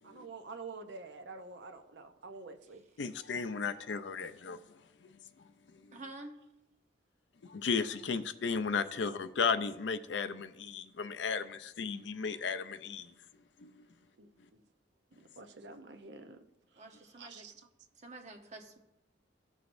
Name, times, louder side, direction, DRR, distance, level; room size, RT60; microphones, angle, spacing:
voice 1, 0.0-2.8 14.2-14.6 15.4-16.4 17.2-17.5, right 4 dB, 70° right, 0.7 m, -48 dB
voice 2, 3.0-5.2 5.7-6.0 7.4-13.1 13.6-13.8, left 5 dB, 70° left, 0.5 m, -35 dB
voice 3, 5.9-6.4 16.8-17.5 18.0-18.8, right 2 dB, 40° right, 0.9 m, -48 dB
15.0 x 6.2 x 2.6 m
head